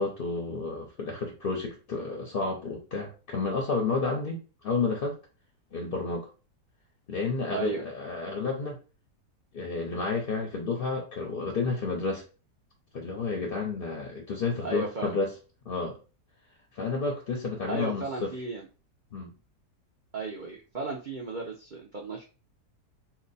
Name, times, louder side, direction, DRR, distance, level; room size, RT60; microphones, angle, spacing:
voice 1, 0.0-4.4 4.6-5.2 5.7-6.3 7.1-8.8 9.5-12.2 12.9-15.3 15.7-16.0 16.7-18.3 19.1-19.3, left 4 dB, 55° left, 1 dB, 0.6 m, -31 dB
voice 2, 7.5-7.8 14.6-15.2 17.7-18.7 20.1-22.2, right 3 dB, 90° right, 0 dB, 0.4 m, -35 dB
2.9 x 2.2 x 4.0 m, 0.32 s
omnidirectional pair, 1.8 m